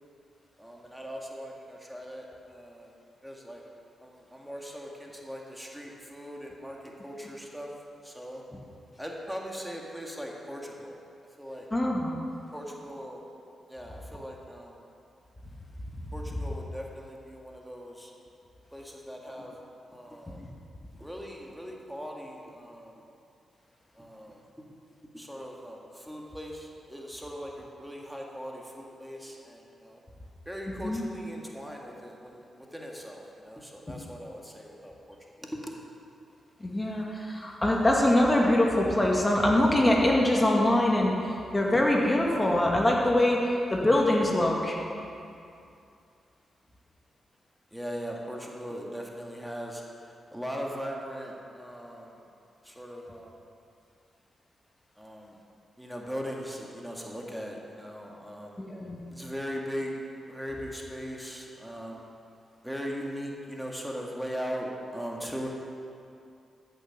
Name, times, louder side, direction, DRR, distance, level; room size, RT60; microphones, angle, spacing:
voice 1, 0.6-2.9 3.2-3.6 4.0-7.7 8.0-8.4 9.0-11.0 11.4-11.7 12.5-13.2 13.7-14.9 16.1-18.1 18.7-19.5 19.9-20.4 21.0-23.0 24.0-24.4 25.1-30.0 30.5-32.4 32.7-35.7 47.7-52.2 52.6-53.4 55.0-55.4 55.8-58.6 59.1-60.0 60.3-62.1 62.6-65.5, equal, 5° right, -1 dB, 2.0 m, -39 dB
voice 2, 11.7-12.2 30.8-31.0 36.6-44.8 58.6-59.0, left 1 dB, 25° left, -1 dB, 2.0 m, -24 dB
14.0 x 6.9 x 6.0 m, 2.6 s
hypercardioid pair, 40°, 0 cm